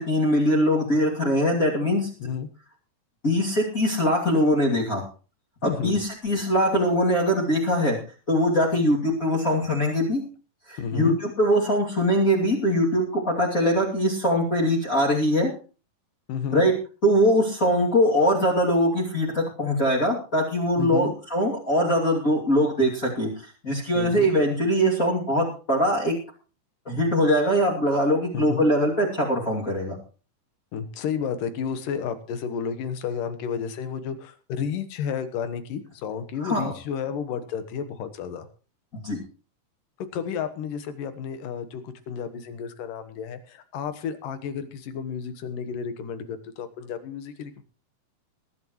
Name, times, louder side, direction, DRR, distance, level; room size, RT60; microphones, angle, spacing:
voice 1, 0.0-2.1 3.2-5.0 5.6-8.0 8.3-10.2 10.7-15.5 16.5-16.7 17.0-23.3 23.6-26.1 26.9-30.0 36.4-36.7 38.9-39.2, equal, 25° left, -4 dB, 2.7 m, -22 dB
voice 2, 5.6-5.9 10.8-11.2 16.3-16.7 20.8-21.2 24.0-24.3 28.3-28.6 30.7-38.5 40.1-47.6, left 7 dB, 80° left, 10 dB, 2.9 m, -31 dB
21.0 x 11.0 x 3.1 m, 0.36 s
omnidirectional pair, 3.8 m